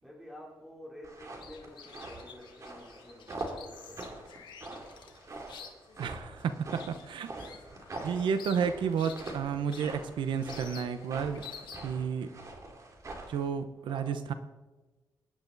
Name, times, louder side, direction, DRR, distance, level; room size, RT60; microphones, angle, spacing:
voice 1, 0.0-4.3 7.3-7.6 13.8-14.2, left 1 dB, 5° right, 3.5 m, -50 dB
sound 1, 1.0-13.5, right 2 dB, 40° right, 3.0 m, -44 dB
sound 2, 1.2-12.1, left 7 dB, 80° left, 2.0 m, -50 dB
voice 2, 6.0-7.3 8.0-11.4 11.8-12.3 13.3-14.3, right 7 dB, 85° right, 0.9 m, -31 dB
22.5 x 10.5 x 4.0 m
cardioid pair, 110°, 8 cm